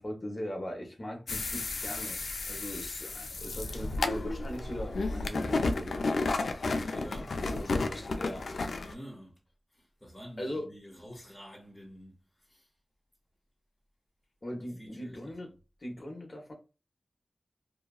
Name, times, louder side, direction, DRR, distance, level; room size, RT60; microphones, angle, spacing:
voice 1, 0.0-2.2 2.5-6.1 6.9-7.1 7.5-8.5 10.4-10.7 14.4-15.5 15.8-16.5, equal, 40° left, 0.9 m, -40 dB
sound 1, 1.3-8.9, left 3 dB, 80° left, 0.3 m, -32 dB
voice 2, 6.8-7.4 8.8-9.4 9.7-12.7 14.8-15.5, equal, 10° left, 0.9 m, -49 dB
2.8 x 2.3 x 2.3 m
wide cardioid pair, 65°, 0 cm